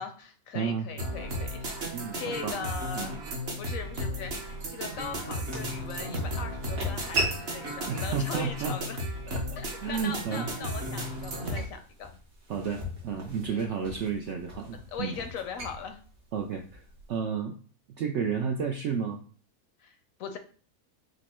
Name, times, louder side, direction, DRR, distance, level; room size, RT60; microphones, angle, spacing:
voice 1, 0.0-3.2 3.6-9.0 9.6-12.1 13.5-13.7 14.9-16.0 19.8-20.4, left 6 dB, 65° left, 7 dB, 0.9 m, -40 dB
voice 2, 0.5-0.9 1.9-2.6 2.9-3.2 7.9-8.8 9.3-9.4 9.8-10.5 12.5-15.2 16.3-16.8 17.1-17.5 17.9-19.2, right 6 dB, 70° right, 3 dB, 0.6 m, -32 dB
sound 1, 1.0-11.6, equal, 45° right, 1.1 m, -35 dB
sound 2, 1.1-17.2, equal, 90° right, 2.3 m, -40 dB
5.2 x 2.1 x 4.2 m, 0.43 s
omnidirectional pair, 1.7 m